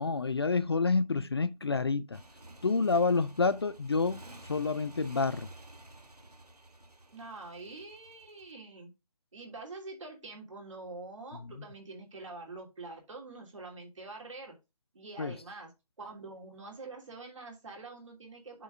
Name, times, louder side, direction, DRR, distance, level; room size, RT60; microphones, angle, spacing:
voice 1, 0.0-2.2 2.6-4.2 4.5-5.5 11.4-11.7 15.2-15.4, left 4 dB, 40° left, 0.4 m, -28 dB
Motorcycle, 2.1-8.5, right 1 dB, 80° right, 1.5 m, -51 dB
voice 2, 7.1-8.9 9.3-14.5 14.9-15.7 16.0-18.6, right 3 dB, 50° right, 3.0 m, -45 dB
6.9 x 4.7 x 4.8 m
figure-of-eight pair, 145°, 20 cm